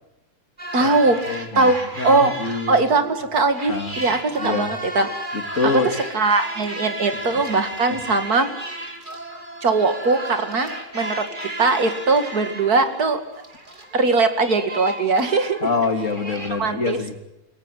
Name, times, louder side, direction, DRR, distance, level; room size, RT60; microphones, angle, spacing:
sound 1, 0.6-3.1 3.5-16.5, right 1 dB, 30° right, 3.4 m, -34 dB
voice 1, 0.7-5.1 6.1-8.5 9.6-10.7 10.9-13.2 13.9-15.6 16.6-17.0, right 3 dB, 75° right, 8 dB, 2.6 m, -20 dB
voice 2, 1.3-2.7 3.7-4.7 5.3-5.9 7.9-8.0 15.6-17.2, left 4 dB, 55° left, 6 dB, 2.7 m, -26 dB
28.0 x 17.0 x 9.2 m, 0.91 s
omnidirectional pair, 1.6 m